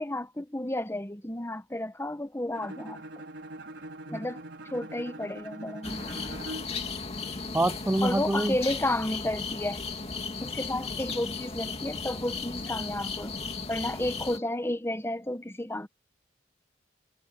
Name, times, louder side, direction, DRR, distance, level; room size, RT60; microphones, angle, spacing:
voice 1, 0.0-3.1 4.1-4.4 4.7-6.3 8.0-9.8 10.4-13.3 13.7-15.9, left 1 dB, 15° left, 1.2 m, -32 dB
Bowed string instrument, 2.5-6.8, right 1 dB, 90° right, 4.6 m, -43 dB
sound 1, 5.8-14.4, left 4 dB, 35° left, 2.7 m, -36 dB
voice 2, 7.5-8.6, right 2 dB, 10° right, 0.3 m, -26 dB
head